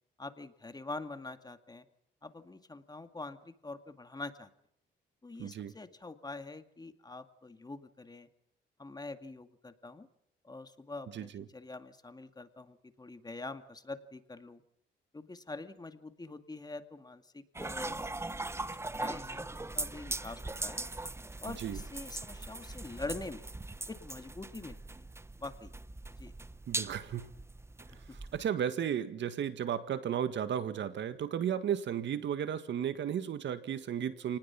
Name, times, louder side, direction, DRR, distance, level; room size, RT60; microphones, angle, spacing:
voice 1, 0.2-1.9 2.2-4.5 5.2-8.3 8.8-10.1 10.4-14.6 15.1-18.1 18.5-20.8 21.4-23.5 23.9-25.0 25.4-25.7 26.2-26.3 28.1-28.2, left 3 dB, 20° left, 8 dB, 2.2 m, -45 dB
voice 2, 5.4-5.7 11.1-11.5 21.6-21.8 26.7-27.3 28.3-34.4, right 9 dB, 65° right, 11 dB, 1.9 m, -34 dB
sound 1, 17.5-28.5, right 2 dB, 15° right, 0.9 m, -40 dB
29.5 x 19.5 x 6.0 m, 0.70 s
cardioid pair, 90°, 20 cm